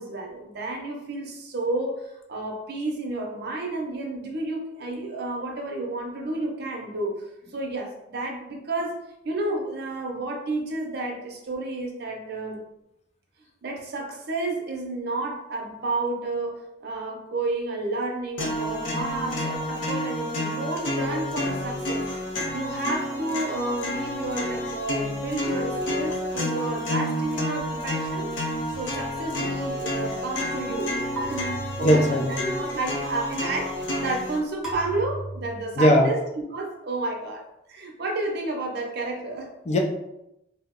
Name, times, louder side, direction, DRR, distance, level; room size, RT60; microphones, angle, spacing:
voice 1, 0.0-9.0 9.2-12.6 13.6-22.1 22.5-28.3 28.8-30.9 31.2-32.2 32.5-36.2 36.5-39.5, right 2 dB, 60° right, 1 dB, 0.6 m, -31 dB
sound 1, 18.4-34.4, left 1 dB, 80° left, 0.6 m, -29 dB
sound 2, 28.7-29.4 31.2-32.5 34.6-35.7, right 2 dB, 5° right, 0.7 m, -37 dB
voice 2, 31.8-32.5 35.8-36.1 39.7-39.8, equal, 35° left, 2 dB, 0.4 m, -19 dB
2.7 x 2.0 x 3.6 m, 0.86 s
head